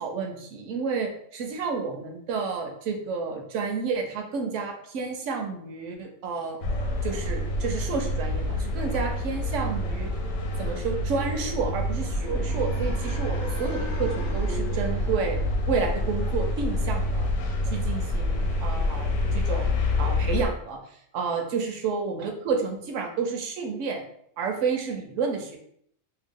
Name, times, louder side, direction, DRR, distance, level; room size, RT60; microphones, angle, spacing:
voice 1, 0.0-6.6 7.0-10.1 10.6-15.4 15.7-17.3 17.7-24.0 24.4-25.6, right 5 dB, 70° right, 3 dB, 0.9 m, -30 dB
sound 1, 6.6-20.5, left 1 dB, 75° left, 1.0 m, -27 dB
sound 2, 12.2-16.3, left 3 dB, 45° left, 0.7 m, -40 dB
2.8 x 2.2 x 3.6 m, 0.68 s
omnidirectional pair, 1.4 m